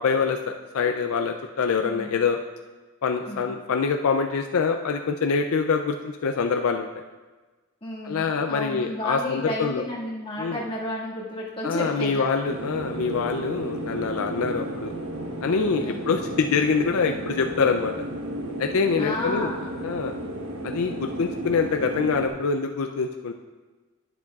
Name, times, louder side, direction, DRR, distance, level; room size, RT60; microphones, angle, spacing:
voice 1, 0.0-2.4 3.0-6.9 8.0-9.8 10.4-10.6 11.6-14.9 15.4-17.9 18.6-19.5 19.8-20.1 20.6-23.3, left 5 dB, 70° left, 5 dB, 0.4 m, -25 dB
voice 2, 7.8-12.3 15.8-16.0 19.0-19.7, left 1 dB, 25° left, -6 dB, 1.9 m, -32 dB
sound 1, 12.4-22.3, right 1 dB, 70° right, 1.1 m, -33 dB
10.5 x 10.0 x 2.4 m, 1.3 s
head